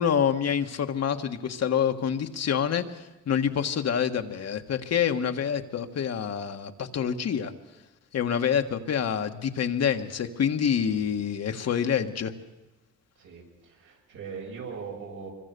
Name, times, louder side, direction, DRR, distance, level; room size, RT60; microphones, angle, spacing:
voice 1, 0.0-7.5 8.1-12.3, left 8 dB, 55° left, 7 dB, 1.7 m, -27 dB
voice 2, 10.8-11.1 13.2-15.3, right 5 dB, 85° right, -1 dB, 7.9 m, -40 dB
25.0 x 23.5 x 6.9 m, 1.0 s
cardioid pair, 90°, 30 cm